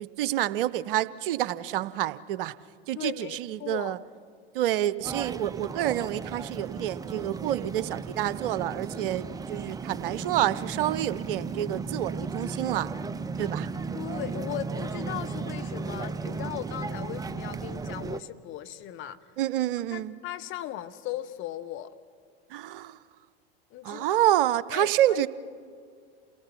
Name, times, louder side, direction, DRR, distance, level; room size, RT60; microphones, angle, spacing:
voice 1, 0.0-2.5 2.9-4.0 4.5-12.9 13.4-13.7 19.4-20.1 22.5-23.0 23.8-25.3, right 13 dB, 60° right, 17 dB, 0.7 m, -28 dB
voice 2, 2.9-3.9 13.9-19.2 19.9-21.9 23.7-24.1 24.7-25.3, left 12 dB, 40° left, 10 dB, 1.0 m, -37 dB
sound 1, 5.0-18.2, right 4 dB, 10° right, 0.5 m, -35 dB
28.0 x 18.5 x 5.8 m, 2.2 s
figure-of-eight pair, 80°, 30 cm